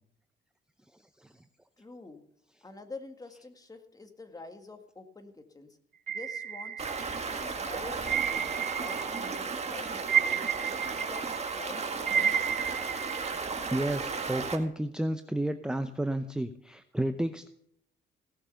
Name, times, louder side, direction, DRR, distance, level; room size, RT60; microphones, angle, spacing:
voice 1, 1.8-2.2 2.6-5.8 6.1-8.4 8.8-10.4 10.9-12.3, left 3 dB, 20° left, 6 dB, 1.8 m, -47 dB
sound 1, 6.1-7.4 8.1-9.4 9.7-13.4, right 8 dB, 50° right, 0.6 m, -31 dB
Stream, 6.8-14.6, right 4 dB, 35° right, 2.0 m, -34 dB
voice 2, 13.7-17.5, right 1 dB, 5° right, 9 dB, 0.7 m, -31 dB
17.0 x 6.6 x 6.9 m, 0.70 s
cardioid pair, 90°, 20 cm